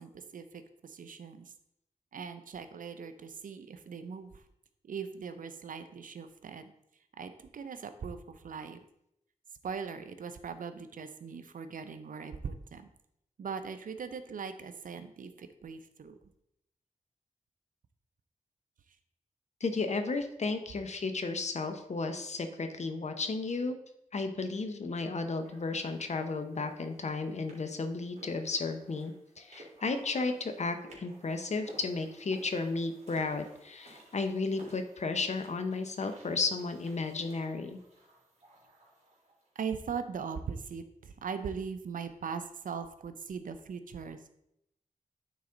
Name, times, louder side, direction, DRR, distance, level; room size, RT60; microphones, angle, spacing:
voice 1, 0.0-1.5 2.1-4.3 4.8-6.7 7.2-8.8 9.6-12.9 13.4-16.1 39.6-44.3, right 6 dB, 75° right, 10 dB, 0.6 m, -40 dB
voice 2, 19.6-23.8 24.1-37.8, left 3 dB, 55° left, 8 dB, 0.8 m, -33 dB
sound 1, 25.4-39.5, right 1 dB, 50° right, 2.6 m, -56 dB
9.3 x 4.0 x 3.8 m, 0.78 s
wide cardioid pair, 75°, 14 cm